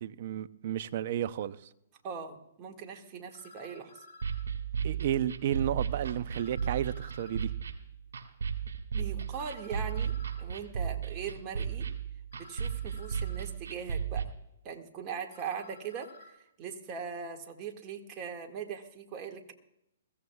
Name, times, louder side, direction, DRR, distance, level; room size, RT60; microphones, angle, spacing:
voice 1, 0.0-1.6 4.8-7.5, right 11 dB, 55° right, 0.6 m, -32 dB
sound 1, 1.4-1.5 3.3-4.5 6.3-7.5 9.3-10.5 12.3-13.5 15.3-16.3, left 3 dB, 75° left, 3.5 m, -54 dB
voice 2, 2.0-4.0 8.9-11.9 12.3-14.3 14.6-19.5, right 6 dB, 30° right, 1.9 m, -40 dB
sound 2, 4.2-14.2, right 7 dB, 80° right, 2.2 m, -35 dB
22.0 x 16.0 x 2.4 m
hypercardioid pair, 135°, 0 cm